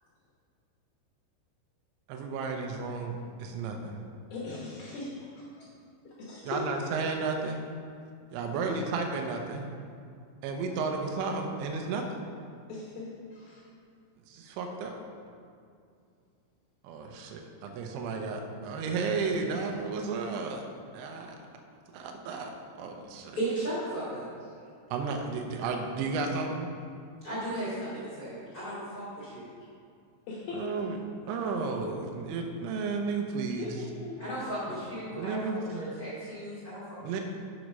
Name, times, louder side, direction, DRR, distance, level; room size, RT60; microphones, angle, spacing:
voice 1, 2.1-4.0 6.4-7.7 8.3-9.7 10.4-12.0 14.3-14.9 16.8-20.6 20.9-21.4 21.9-22.5 22.8-23.4 24.9-26.7 30.5-31.0 31.3-33.7 35.1-36.0 37.0-37.2, right 4 dB, 80° right, 2 dB, 2.8 m, -33 dB
voice 2, 4.3-5.2 6.0-6.8 8.7-8.9 12.7-13.7 17.1-17.2 19.5-19.7 27.8-27.9 30.3-31.0 33.6-34.2, left 3 dB, 80° left, -5 dB, 2.1 m, -39 dB
voice 3, 23.3-24.3 27.2-29.5 34.2-35.4 35.7-36.8, right 1 dB, 40° left, -10 dB, 1.2 m, -35 dB
7.8 x 6.2 x 5.4 m, 2.4 s
omnidirectional pair, 5.9 m